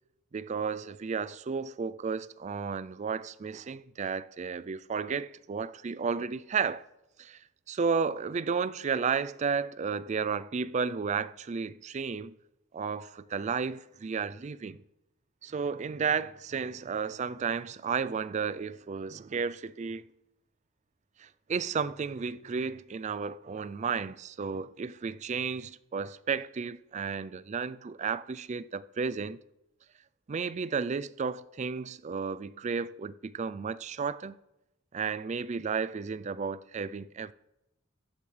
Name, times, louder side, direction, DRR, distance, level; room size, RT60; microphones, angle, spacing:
voice 1, 0.3-6.8 7.2-7.4 7.7-12.3 12.7-14.8 15.4-20.0 21.2-29.4 30.3-34.4 34.9-37.3, right 5 dB, 35° right, 0.4 m, -33 dB
15.5 x 12.0 x 3.3 m
head